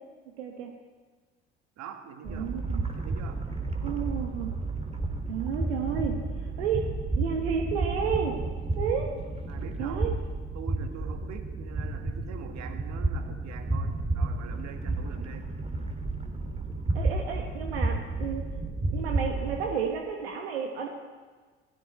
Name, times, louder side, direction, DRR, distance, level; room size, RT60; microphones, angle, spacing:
voice 1, 0.4-0.7 2.2-2.8 3.8-4.5 5.3-6.2 6.6-6.8 7.2-8.4 8.8-9.1 9.8-10.1 16.9-18.4 18.9-20.9, right 7 dB, 80° right, 2 dB, 1.3 m, -31 dB
voice 2, 1.8-2.5 2.9-3.4 9.5-10.1 10.5-15.5, right 8 dB, 60° right, 6 dB, 1.7 m, -44 dB
sound 1, 2.3-19.7, right 2 dB, 20° right, 2.1 m, -31 dB
17.0 x 15.5 x 4.3 m, 1.4 s
hypercardioid pair, 55°, 32 cm